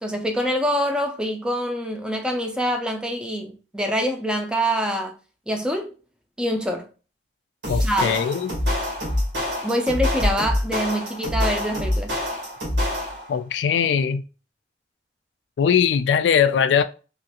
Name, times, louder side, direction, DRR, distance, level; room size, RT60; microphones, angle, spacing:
voice 1, 0.0-5.2 5.5-5.9 6.4-6.9 7.8-8.2 9.6-12.2, equal, 5° right, 0.4 m, -25 dB
sound 1, 7.6-13.3, left 1 dB, 90° right, 1.3 m, -25 dB
voice 2, 7.7-8.5 13.3-14.2 15.6-16.8, left 7 dB, 90° left, 0.3 m, -20 dB
3.0 x 2.4 x 2.8 m
head